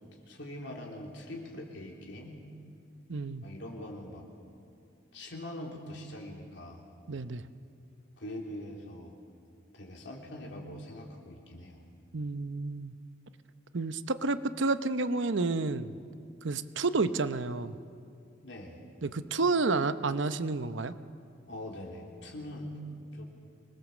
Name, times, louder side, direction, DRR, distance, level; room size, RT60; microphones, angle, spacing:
voice 1, 0.3-2.4 3.4-4.3 5.1-6.8 8.2-9.1 9.7-11.9 18.4-18.8 21.5-22.7 23.1-23.2, left 1 dB, 65° left, 0 dB, 3.4 m, -43 dB
voice 2, 3.1-3.4 7.1-7.4 12.1-12.9 13.7-16.0 16.4-17.8 19.0-20.9, right 3 dB, 70° right, 12 dB, 0.8 m, -30 dB
25.0 x 20.0 x 7.3 m, 2.4 s
head